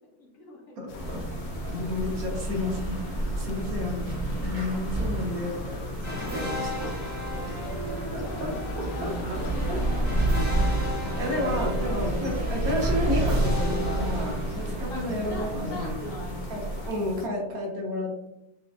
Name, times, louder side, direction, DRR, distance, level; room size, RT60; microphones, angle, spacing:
voice 1, 0.2-1.3 6.8-7.0 7.8-10.1 11.4-12.5 14.9-17.0, left 2 dB, 65° left, -1 dB, 1.1 m, -44 dB
voice 2, 0.8-1.2 1.7-4.1 4.4-5.8 6.1-6.9 7.4-7.5 8.1-8.5 9.0-9.4 9.7-9.8 10.3-10.5 11.2-15.9 16.5-18.3, left 1 dB, 70° right, -1 dB, 1.2 m, -31 dB
sound 1, 0.9-17.3, left 2 dB, 85° left, 0.5 m, -40 dB
sound 2, 1.0-16.9, right 1 dB, 40° right, 0.7 m, -30 dB
sound 3, 6.0-14.9, left 1 dB, 20° left, 0.5 m, -36 dB
5.1 x 2.3 x 2.3 m, 0.89 s
omnidirectional pair, 1.7 m